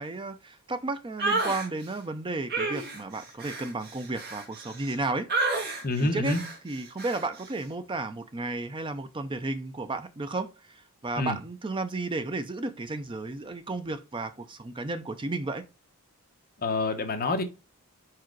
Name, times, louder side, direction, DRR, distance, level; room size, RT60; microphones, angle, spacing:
voice 1, 0.0-6.3 6.6-15.6, right 2 dB, 20° right, 0.5 m, -33 dB
sound 1, 1.2-1.7 2.5-4.9 5.3-5.8 6.2-6.6 7.0-7.2, right 3 dB, 45° right, 1.5 m, -30 dB
voice 2, 5.8-6.4 11.2-11.4 16.6-17.4, left 2 dB, 40° left, 1.0 m, -27 dB
4.9 x 4.7 x 4.5 m
head